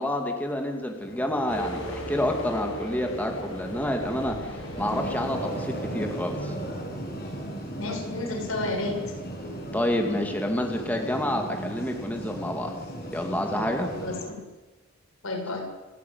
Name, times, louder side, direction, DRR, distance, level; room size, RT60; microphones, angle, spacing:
voice 1, 0.0-6.5 9.7-12.7 13.1-13.9, left 1 dB, 10° left, 3 dB, 2.4 m, -28 dB
sound 1, 1.0-14.2, right 1 dB, 50° left, 7.1 m, -37 dB
sound 2, 1.5-7.1, equal, 70° left, 7.9 m, -39 dB
voice 2, 7.7-9.0 14.0-14.4 15.2-15.6, left 2 dB, 90° left, 1 dB, 7.0 m, -31 dB
29.0 x 10.5 x 9.6 m, 1.2 s
head